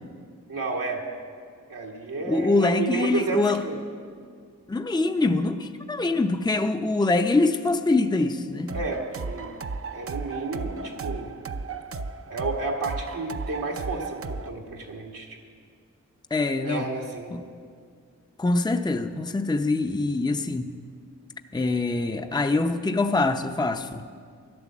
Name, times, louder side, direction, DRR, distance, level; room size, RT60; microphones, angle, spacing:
voice 1, 0.5-1.0 1.7-3.8 8.7-9.5 9.9-11.3 12.3-15.4 16.6-17.3, right 3 dB, 80° right, 0 dB, 1.6 m, -31 dB
voice 2, 2.3-3.6 4.7-8.7 16.3-16.9 17.3-17.4 18.4-20.7 21.5-24.0, left 3 dB, 15° left, 7 dB, 0.6 m, -24 dB
sound 1, 8.7-14.5, right 4 dB, 45° right, 0.6 m, -35 dB
12.0 x 11.0 x 7.3 m, 2.1 s
cardioid pair, 55°, 32 cm